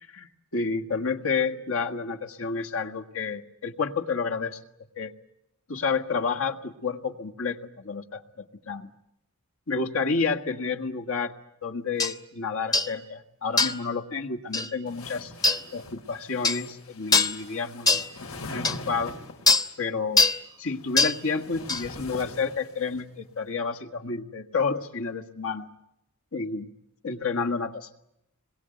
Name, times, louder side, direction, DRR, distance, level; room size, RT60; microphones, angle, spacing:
voice 1, 0.0-4.6 5.0-5.1 5.7-8.9 9.7-11.3 11.6-15.3 15.7-18.0 18.5-19.1 19.8-20.3 20.6-25.7 26.3-26.7 27.0-27.9, left 4 dB, 70° left, 3 dB, 1.7 m, -30 dB
sound 1, 12.0-12.1 12.7-12.9 13.6-13.9 14.5-14.7 15.4-15.6 16.4-16.6 17.1-17.4 17.9-18.1 18.6-18.8 19.5-19.7 20.2-20.4 21.0-21.2 21.7-21.8, left 3 dB, 15° left, 1.0 m, -22 dB
sound 2, 14.9-19.5 20.5-23.0, left 2 dB, 85° left, 4.5 m, -42 dB
27.0 x 22.0 x 9.1 m, 0.86 s
head